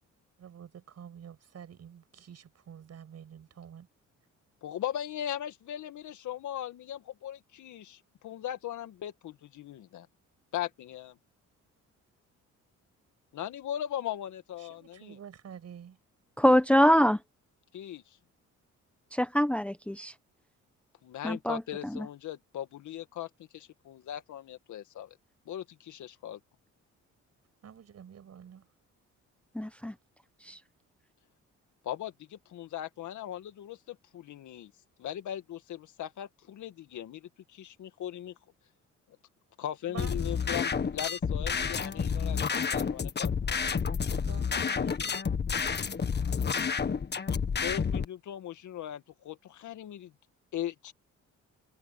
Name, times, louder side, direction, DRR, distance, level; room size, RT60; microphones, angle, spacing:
voice 1, 0.4-3.9 14.6-16.0 27.6-28.7 39.9-40.1 43.4-45.2, right 8 dB, 55° right, 6.7 m, -48 dB
voice 2, 4.6-10.1 10.5-11.2 13.3-15.2 17.7-18.2 21.0-25.2 25.5-26.4 31.8-34.7 35.0-38.4 39.6-43.3 47.5-50.1 50.5-50.9, left 11 dB, 75° left, 2.0 m, -39 dB
voice 3, 16.4-17.2 19.1-20.1 21.2-21.6 21.9-22.1 29.5-29.9 30.4-30.6, equal, 5° left, 1.0 m, -24 dB
sound 1, 40.0-48.0, left 6 dB, 35° left, 1.6 m, -30 dB
cardioid pair, 90°, 30 cm